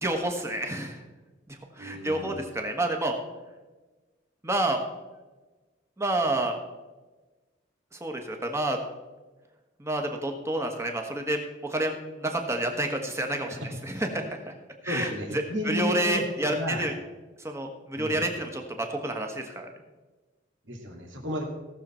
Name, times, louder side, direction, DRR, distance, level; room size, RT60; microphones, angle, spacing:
voice 1, 0.0-1.0 1.5-3.2 4.4-4.8 6.0-6.6 7.9-8.8 9.8-14.5 14.8-16.9 17.4-19.7, right 1 dB, 15° right, 4 dB, 1.3 m, -29 dB
voice 2, 1.8-2.4 13.5-13.7 14.9-16.2 16.5-16.9 17.9-18.2 20.6-21.4, equal, 80° right, 0 dB, 2.3 m, -33 dB
17.0 x 6.7 x 4.4 m, 1.2 s
head